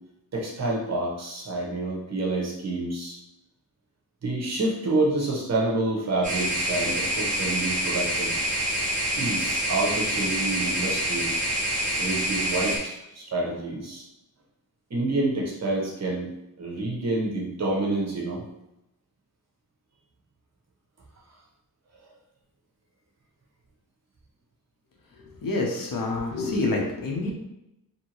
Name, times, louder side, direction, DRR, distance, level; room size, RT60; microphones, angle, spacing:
voice 1, 0.3-3.2 4.2-8.3 9.2-11.4 11.8-14.0 14.9-16.3 16.6-18.4, right 2 dB, 45° right, -2 dB, 0.8 m, -28 dB
sound 1, 6.2-12.8, right 1 dB, 20° right, 1.1 m, -27 dB
voice 2, 25.4-27.3, left 2 dB, 60° left, 0 dB, 0.7 m, -27 dB
2.9 x 2.6 x 2.8 m, 0.88 s
wide cardioid pair, 125°, 38 cm